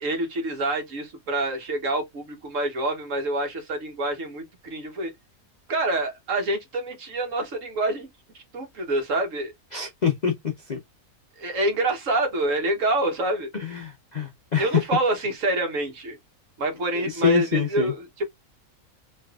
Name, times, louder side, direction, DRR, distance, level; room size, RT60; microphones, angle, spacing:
voice 1, 0.0-5.1 5.7-8.1 8.3-9.5 11.4-13.5 14.6-16.2 16.6-18.2, right 2 dB, 60° right, 1.4 m, -27 dB
voice 2, 9.7-10.3 10.7-10.8 13.6-14.7 16.9-17.9, left 7 dB, 50° left, 0.5 m, -25 dB
3.4 x 3.0 x 2.3 m
omnidirectional pair, 1.5 m